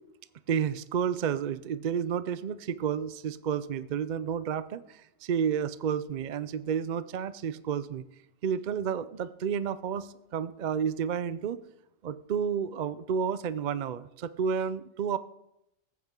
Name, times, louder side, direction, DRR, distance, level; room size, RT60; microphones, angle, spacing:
voice 1, 0.5-8.1 8.4-11.6 12.0-15.2, right 7 dB, 55° right, 14 dB, 0.5 m, -31 dB
20.5 x 9.4 x 3.7 m, 0.83 s
omnidirectional pair, 1.2 m